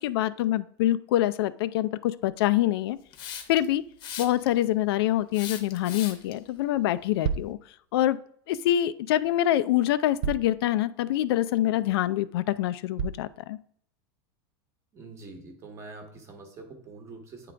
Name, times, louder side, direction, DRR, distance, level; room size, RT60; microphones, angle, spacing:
voice 1, 0.0-3.0 3.5-3.8 4.2-7.6 7.9-8.2 8.5-13.6, left 13 dB, 80° left, 14 dB, 0.4 m, -25 dB
Hiss, 3.1-3.7 4.0-4.6 5.3-6.3, left 8 dB, 35° left, 0.8 m, -38 dB
sound 1, 6.7-6.8 7.2-7.6 9.1-9.2 10.2-10.6 11.1-11.2 11.8-11.9 13.0-13.3, right 7 dB, 55° right, 0.4 m, -31 dB
voice 2, 14.9-17.5, right 3 dB, 20° right, 5 dB, 1.0 m, -45 dB
9.1 x 3.8 x 3.3 m, 0.63 s
supercardioid pair, 170°, 13 cm